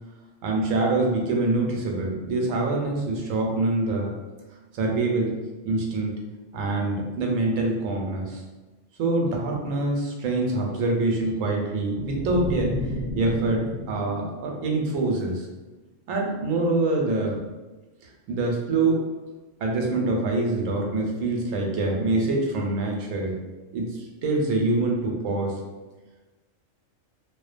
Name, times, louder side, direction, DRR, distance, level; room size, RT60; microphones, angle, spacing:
voice 1, 0.4-4.1 4.8-5.3 5.6-6.1 6.5-8.4 9.0-12.8 13.2-15.5 16.1-17.4 18.0-19.0 19.6-23.4 23.7-25.5, right 2 dB, 80° right, 0 dB, 1.0 m, -25 dB
sound 1, 11.9-15.2, left 1 dB, 50° left, 0.5 m, -33 dB
2.4 x 2.1 x 2.4 m, 1.2 s
omnidirectional pair, 1.4 m